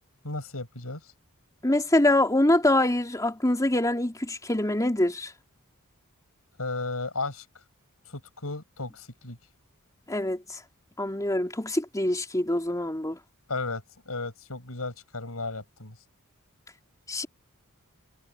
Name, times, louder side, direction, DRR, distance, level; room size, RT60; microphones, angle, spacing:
voice 1, 0.2-1.1 6.6-7.5 8.1-9.4 13.5-16.0, left 3 dB, 70° left, 7.4 m, -34 dB
voice 2, 1.6-5.3 10.1-10.6 11.0-13.2 17.1-17.3, left 1 dB, 15° left, 3.1 m, -24 dB
head